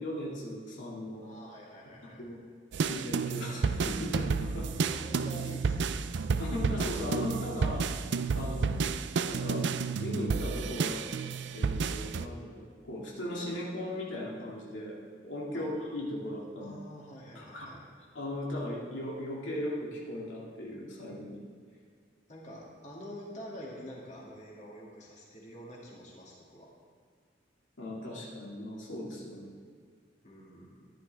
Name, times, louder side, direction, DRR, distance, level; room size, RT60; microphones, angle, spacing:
voice 1, 0.0-1.3 2.2-2.4 2.8-4.7 6.4-7.9 8.3-8.8 9.2-9.7 10.0-11.0 11.5-15.0 15.2-16.8 17.3-17.7 18.1-21.4 27.8-29.5, left 1 dB, 90° left, -4 dB, 2.3 m, -37 dB
voice 2, 1.2-2.2 4.6-6.1 15.5-15.7 16.6-17.8 22.3-26.7 30.2-30.9, equal, 40° left, -4 dB, 2.4 m, -47 dB
sound 1, 2.7-12.3, right 5 dB, 65° right, 0.4 m, -31 dB
14.5 x 11.0 x 3.4 m, 2.1 s
head